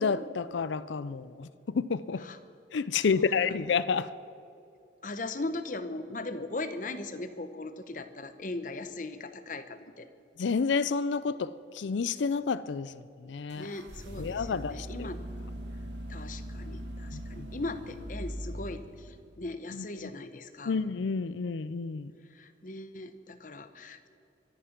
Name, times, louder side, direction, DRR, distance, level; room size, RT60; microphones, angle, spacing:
voice 1, 0.0-2.2 2.7-4.1 10.4-13.7 14.2-15.1 17.1-17.5 19.7-20.1 20.7-22.1, left 5 dB, 80° left, 16 dB, 0.5 m, -30 dB
voice 2, 5.0-10.1 13.6-15.2 16.1-20.8 22.3-24.1, left 2 dB, 45° left, 10 dB, 0.9 m, -39 dB
sound 1, 13.5-19.4, right 1 dB, 70° right, 1.5 m, -41 dB
24.0 x 10.0 x 6.0 m, 2.6 s
head